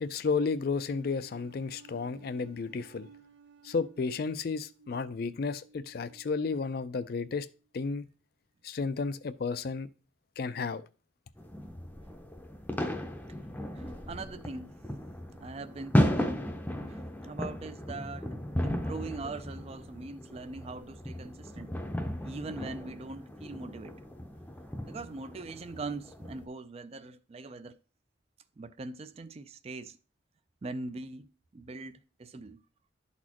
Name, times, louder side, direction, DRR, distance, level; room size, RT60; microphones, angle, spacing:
voice 1, 0.0-3.1 3.6-7.5 7.7-8.1 8.6-9.9 10.4-10.8, left 4 dB, 50° left, 0.4 m, -32 dB
sound 1, 0.8-7.2, right 4 dB, 85° right, 0.6 m, -57 dB
sound 2, 11.4-26.4, equal, 10° left, 0.6 m, -35 dB
voice 2, 13.7-14.8 15.4-16.4 16.9-18.4 18.6-21.7 22.2-24.0 24.8-27.8 28.6-30.0 30.6-32.6, right 3 dB, 35° right, 0.3 m, -41 dB
11.5 x 4.2 x 2.9 m
head